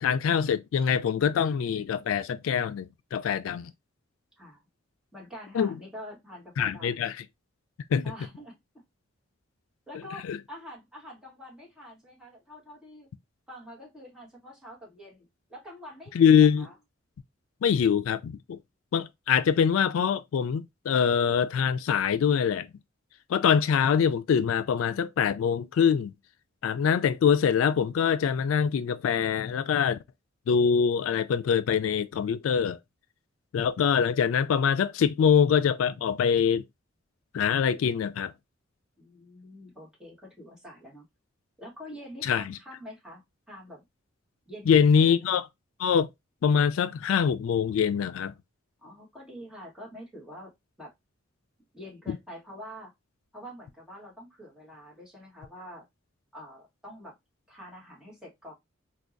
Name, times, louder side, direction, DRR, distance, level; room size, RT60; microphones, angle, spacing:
voice 1, 0.0-3.7 5.5-5.8 6.6-7.2 7.9-8.1 10.3-10.4 16.1-16.7 17.6-18.6 18.9-22.7 23.3-26.1 26.6-30.0 30.5-32.8 33.5-36.6 37.3-38.3 42.2-42.6 44.7-45.4 45.8-46.1 46.4-48.3 52.1-52.2, left 7 dB, 80° left, 0.3 m, -24 dB
voice 2, 5.1-7.1 8.0-8.6 9.9-13.1 13.5-16.7 39.0-41.1 41.6-43.8 44.5-45.4 48.8-50.5 50.8-50.9 51.7-52.9 53.3-55.9 56.3-57.1 57.5-58.5, equal, 5° right, 1.3 m, -46 dB
4.5 x 2.2 x 2.5 m
head